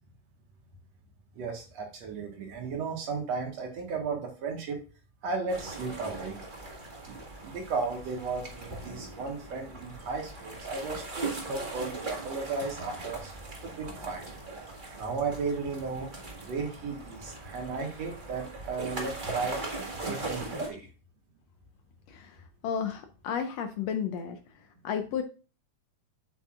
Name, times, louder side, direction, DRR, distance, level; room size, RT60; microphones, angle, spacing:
voice 1, 1.3-4.8 5.2-6.4 7.1-13.3 13.6-14.3 14.9-16.1 16.5-19.6 20.0-20.9, right 4 dB, 60° right, 2 dB, 2.4 m, -35 dB
sound 1, 5.5-20.7, right 3 dB, 35° right, 0.7 m, -40 dB
voice 2, 22.6-24.4 24.8-25.2, left 7 dB, 85° left, 6 dB, 1.5 m, -32 dB
8.1 x 7.7 x 2.4 m, 0.35 s
omnidirectional pair, 3.8 m